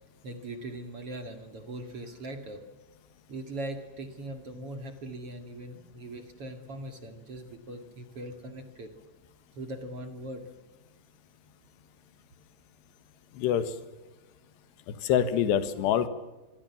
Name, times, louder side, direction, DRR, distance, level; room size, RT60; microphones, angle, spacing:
voice 1, 0.2-2.6 3.3-8.9 9.5-10.4, right 1 dB, 40° right, 7 dB, 2.4 m, -40 dB
voice 2, 13.3-13.7 14.9-16.1, left 9 dB, 75° left, 11 dB, 3.7 m, -26 dB
26.0 x 23.5 x 7.2 m, 1.1 s
omnidirectional pair, 5.0 m